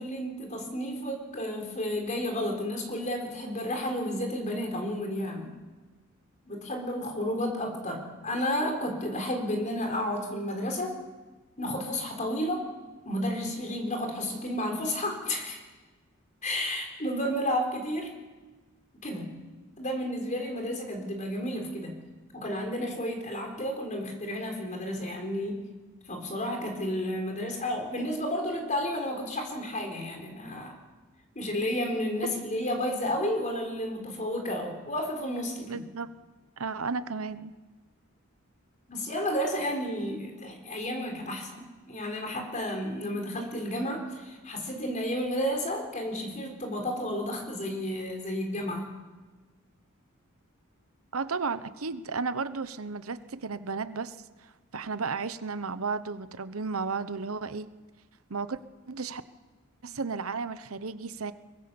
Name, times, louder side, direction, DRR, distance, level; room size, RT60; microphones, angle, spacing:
voice 1, 0.0-5.5 6.5-11.0 11.6-12.7 13.1-15.6 16.4-18.1 19.0-19.3 19.8-21.9 22.3-25.7 26.1-30.7 31.3-35.8 38.9-48.9, left 1 dB, 35° left, 3 dB, 4.3 m, -32 dB
voice 2, 35.7-36.1 36.6-37.5 51.1-57.7 58.3-58.6 58.9-59.2 59.8-61.3, right 4 dB, 90° right, 13 dB, 1.0 m, -33 dB
23.0 x 21.5 x 7.1 m, 1.3 s
head